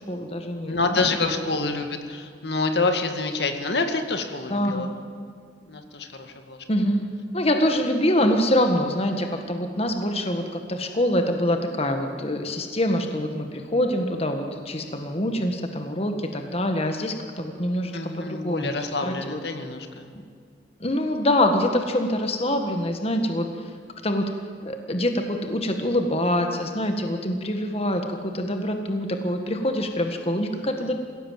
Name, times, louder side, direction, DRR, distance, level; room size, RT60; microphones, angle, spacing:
voice 1, 0.0-1.0 4.5-4.9 6.7-7.0 7.3-19.4 20.8-23.5 24.0-24.3 24.7-30.9, left 1 dB, 35° left, 5 dB, 1.7 m, -25 dB
voice 2, 0.7-4.9 5.7-6.6 17.9-20.1 30.5-30.9, left 3 dB, 65° left, 6 dB, 2.0 m, -27 dB
27.0 x 16.5 x 7.5 m, 2.2 s
head